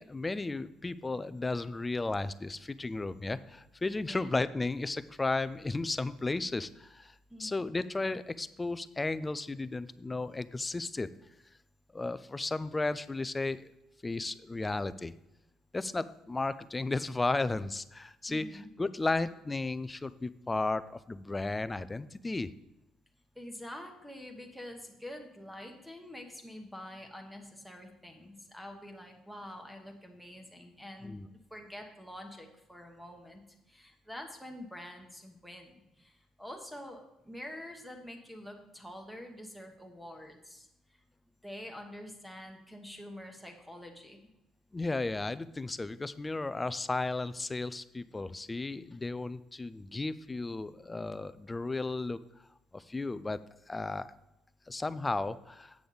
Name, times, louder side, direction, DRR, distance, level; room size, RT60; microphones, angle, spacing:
voice 1, 0.0-7.1 7.4-11.1 11.9-13.7 14.0-15.1 15.7-22.5 31.0-31.3 44.7-52.2 52.7-53.4 53.7-54.1 54.7-55.7, left 3 dB, 15° left, 15 dB, 0.3 m, -34 dB
voice 2, 7.3-7.6 18.3-18.7 23.3-33.4 33.7-41.0 41.4-44.3, left 1 dB, ahead, 4 dB, 1.1 m, -47 dB
8.3 x 6.9 x 3.9 m, 0.91 s
cardioid pair, 140°, 0 cm